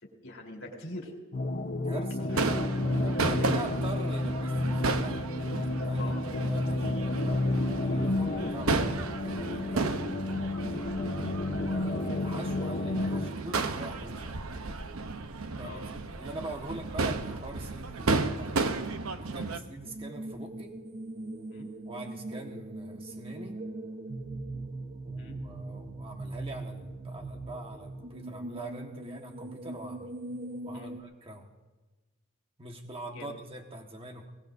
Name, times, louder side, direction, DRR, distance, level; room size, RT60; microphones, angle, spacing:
voice 1, 0.0-1.1 2.2-2.4 6.0-6.2 10.8-11.0 15.6-15.8 19.4-19.6 21.5-21.7 25.2-25.4 30.7-30.9 33.1-33.3, left 1 dB, 60° left, 0 dB, 3.8 m, -43 dB
sound 1, 1.3-13.3, left 2 dB, 40° left, 0.9 m, -31 dB
voice 2, 1.8-2.3 3.0-5.2 5.8-6.1 6.4-8.9 9.2-10.0 11.6-14.4 15.6-18.5 19.2-20.7 21.8-23.6 25.0-30.1 30.6-31.5 32.6-34.3, right 1 dB, 25° right, 2 dB, 1.5 m, -43 dB
Crowd / Fireworks, 2.3-19.6, right 3 dB, 75° right, 0.8 m, -33 dB
sound 2, 19.8-31.0, right 2 dB, 45° right, 1.1 m, -40 dB
22.0 x 19.0 x 2.7 m, 1.2 s
head